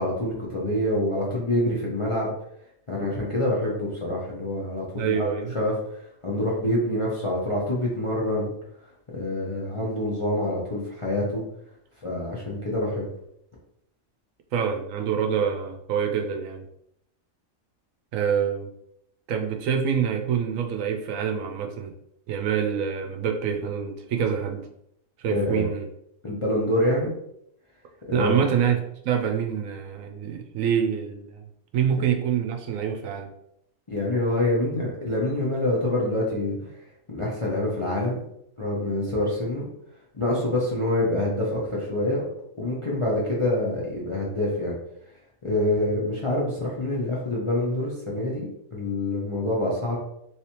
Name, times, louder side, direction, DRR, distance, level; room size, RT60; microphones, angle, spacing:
voice 1, 0.0-2.3 2.9-8.5 9.1-11.4 12.0-13.1 25.3-25.7 26.2-27.1 28.1-28.5 33.9-36.7 37.1-38.2 38.6-39.6 40.1-42.2 42.5-44.7 45.4-50.0, left 1 dB, 35° left, -5 dB, 0.5 m, -26 dB
voice 2, 5.0-5.5 14.5-16.7 18.1-18.7 19.3-21.9 22.3-24.7 25.2-25.9 28.1-31.4 31.7-33.3, right 8 dB, 75° right, 4 dB, 0.9 m, -26 dB
3.2 x 3.0 x 2.9 m, 0.75 s
omnidirectional pair, 1.5 m